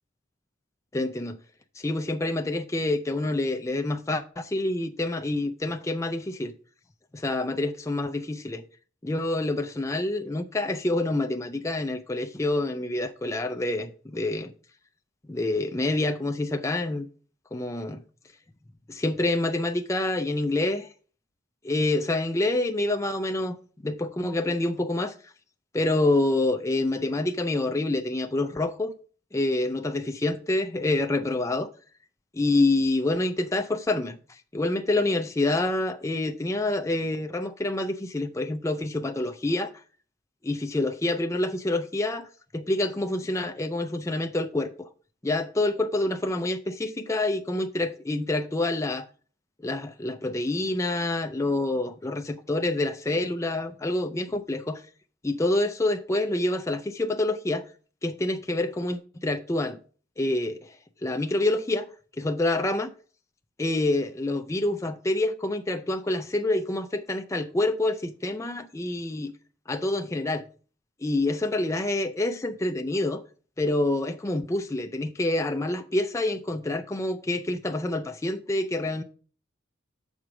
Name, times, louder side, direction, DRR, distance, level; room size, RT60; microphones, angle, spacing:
voice 1, 0.9-1.4 1.8-6.5 7.1-8.6 9.0-14.5 15.3-17.1 17.5-18.0 18.9-20.9 21.6-23.6 23.8-25.3 25.7-28.9 29.3-31.7 32.3-39.7 40.4-44.9 45.2-49.1 49.6-54.8 55.2-57.7 58.0-59.8 60.2-60.8 61.0-61.9 62.2-62.9 63.6-69.3 69.7-70.4 71.0-73.2 73.6-79.0, left 2 dB, 15° left, 0.4 m, -27 dB
7.2 x 4.7 x 5.0 m
head